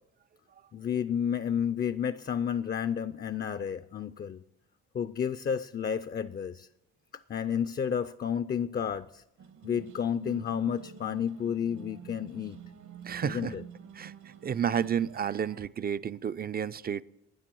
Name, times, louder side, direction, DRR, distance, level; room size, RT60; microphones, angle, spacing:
voice 1, 0.7-4.4 4.9-6.7 7.1-9.2 9.6-12.6 13.2-13.6, left 8 dB, 30° left, 0.4 m, -31 dB
sound 1, 9.4-15.7, right 8 dB, 75° right, 1.4 m, -47 dB
voice 2, 13.0-13.5 14.0-14.1 14.4-17.0, right 8 dB, 30° right, 0.4 m, -31 dB
12.0 x 9.4 x 7.6 m
cardioid pair, 90°, 30 cm